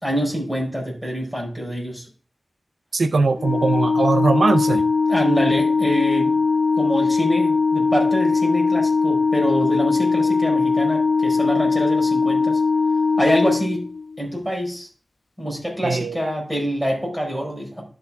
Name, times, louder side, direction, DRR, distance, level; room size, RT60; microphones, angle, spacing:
voice 1, 0.0-2.0 5.1-6.4 6.8-12.6 13.2-13.9 14.2-14.9 15.4-17.8, equal, 5° right, 4.5 m, -25 dB
voice 2, 2.9-4.9 15.8-16.2, right 3 dB, 85° right, 0.5 m, -20 dB
Organ, 3.4-14.2, left 4 dB, 75° left, 0.4 m, -20 dB
12.0 x 4.8 x 3.4 m
wide cardioid pair, 90°, 0 cm